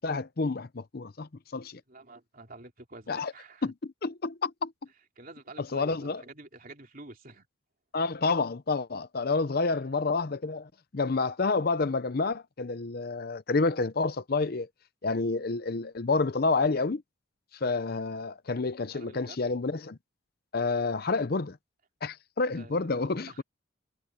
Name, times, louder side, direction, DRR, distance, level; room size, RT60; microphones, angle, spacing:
voice 1, 0.0-1.8 3.1-3.3 3.6-3.7 4.0-4.7 5.6-6.2 7.9-14.7 15.0-17.0 17.6-20.0 20.5-21.6 22.0-23.4, left 3 dB, 50° left, 0.6 m, -29 dB
voice 2, 1.9-3.7 5.2-7.5 9.5-10.0 18.9-19.4 22.5-23.4, right 2 dB, 45° right, 3.4 m, -49 dB
head